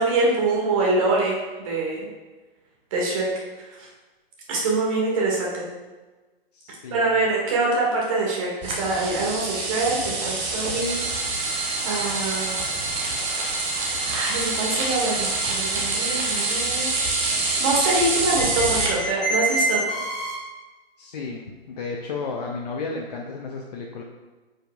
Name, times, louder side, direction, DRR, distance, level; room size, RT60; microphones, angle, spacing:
voice 1, 0.0-2.1 2.9-3.3 3.6-3.9 4.5-5.6 6.9-11.0 11.3-12.6 14.1-16.9 17.4-19.8, right 2 dB, 35° right, -3 dB, 1.8 m, -25 dB
voice 2, 6.5-7.2 21.0-24.0, left 4 dB, 45° left, 0 dB, 0.7 m, -33 dB
sound 1, 8.6-18.9, right 3 dB, 15° right, 0.7 m, -26 dB
sound 2, 10.7-20.3, right 2 dB, ahead, 1.1 m, -31 dB
8.7 x 5.2 x 2.3 m, 1.2 s
figure-of-eight pair, 125°, 30 cm